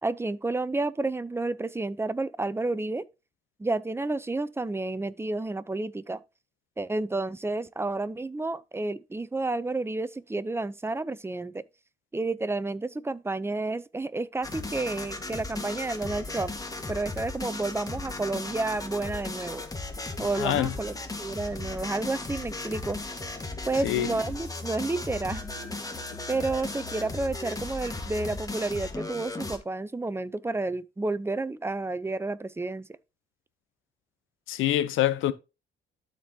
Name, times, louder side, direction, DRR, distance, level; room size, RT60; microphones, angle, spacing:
voice 1, 0.0-3.0 3.6-6.2 6.8-11.6 12.1-16.5 16.9-19.6 20.2-23.0 23.6-25.4 26.3-32.9, right 2 dB, 10° right, 0.6 m, -30 dB
sound 1, 14.4-29.6, left 2 dB, 15° left, 1.5 m, -36 dB
voice 2, 20.4-20.7 23.8-24.1 34.5-35.3, left 13 dB, 90° left, 0.8 m, -25 dB
12.5 x 4.5 x 2.8 m
cardioid pair, 90°, 20 cm